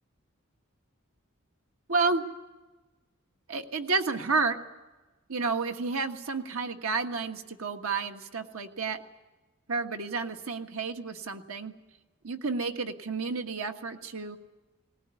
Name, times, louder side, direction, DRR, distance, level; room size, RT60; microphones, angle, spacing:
voice 1, 1.9-2.2 3.5-4.6 5.3-9.0 9.7-11.7 12.2-14.4, right 4 dB, 90° right, 5 dB, 1.6 m, -30 dB
19.5 x 19.0 x 9.8 m, 1.2 s
head